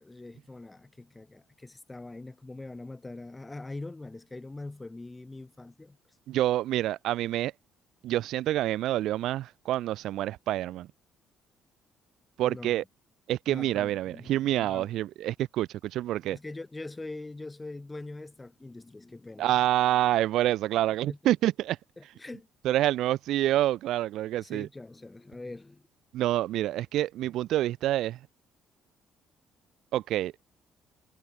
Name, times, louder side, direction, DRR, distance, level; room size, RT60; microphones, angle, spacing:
voice 1, 0.0-6.0 12.4-12.8 13.5-14.9 16.2-19.6 21.1-21.2 22.0-22.5 24.4-25.9, left 2 dB, 10° left, 2.4 m, -43 dB
voice 2, 6.3-7.5 8.0-10.9 12.4-12.8 13.3-16.4 19.4-21.8 22.6-24.7 26.1-28.2 29.9-30.3, right 14 dB, 70° right, 1.1 m, -27 dB
cardioid pair, 155°, 0 cm